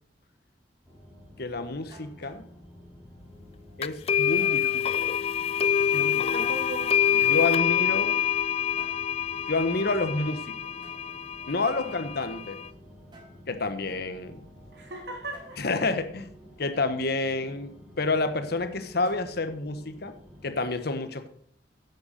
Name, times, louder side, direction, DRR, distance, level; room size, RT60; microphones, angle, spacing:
sound 1, 0.8-20.7, equal, 10° right, 3.8 m, -51 dB
voice 1, 1.4-2.4 3.8-4.8 5.9-6.4 7.2-8.3 9.5-10.5 11.5-12.6 13.5-14.4 15.6-16.3 16.6-20.1 20.4-21.3, left 3 dB, 60° left, 9 dB, 1.2 m, -29 dB
sound 2, 1.9-2.5 4.4-4.9 6.5-8.0 8.5-9.1 10.8-11.0 13.1-13.4 15.3-15.6 19.0-19.6, right 1 dB, 25° right, 4.7 m, -54 dB
sound 3, 3.8-12.7, left 9 dB, 35° left, 0.4 m, -26 dB
voice 2, 6.3-7.6 11.9-12.0 14.7-15.6, right 1 dB, 65° right, 1 dB, 3.2 m, -39 dB
10.5 x 8.2 x 6.6 m, 0.66 s
head